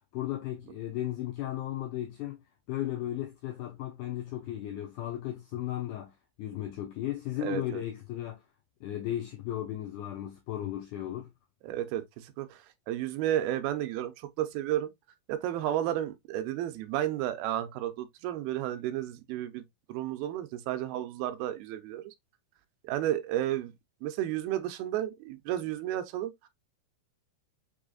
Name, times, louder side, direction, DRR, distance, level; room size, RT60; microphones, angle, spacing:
voice 1, 0.1-2.4 2.7-6.1 6.4-8.4 8.8-11.3, left 12 dB, 85° left, 1.8 m, -35 dB
voice 2, 7.4-7.8 11.6-14.9 15.3-19.6 19.9-22.1 22.8-23.7 24.0-26.5, right 12 dB, 80° right, 2.3 m, -32 dB
6.2 x 3.4 x 2.3 m
omnidirectional pair, 4.4 m